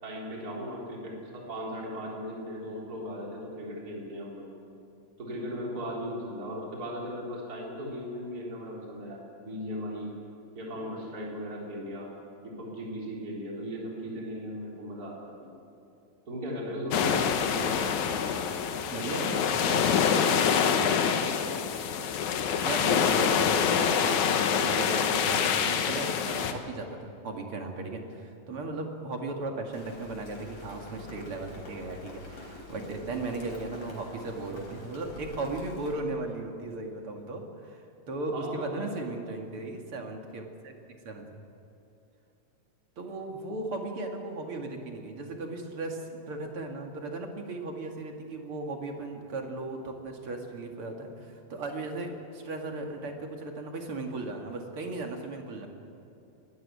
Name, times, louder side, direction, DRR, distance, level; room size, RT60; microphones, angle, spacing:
voice 1, 0.0-4.5 5.2-10.1 10.5-12.1 12.4-15.5 16.3-17.8 38.3-39.0, equal, 25° right, -3 dB, 4.1 m, -37 dB
sound 1, 16.9-26.5, left 7 dB, 70° left, 2.4 m, -26 dB
voice 2, 18.9-20.4 22.3-40.7 41.0-41.4 43.0-55.7, right 2 dB, 45° right, 2 dB, 2.7 m, -37 dB
Rain, 29.7-35.9, left 1 dB, 45° left, 5.0 m, -46 dB
21.0 x 14.0 x 9.7 m, 2.7 s
omnidirectional pair, 3.7 m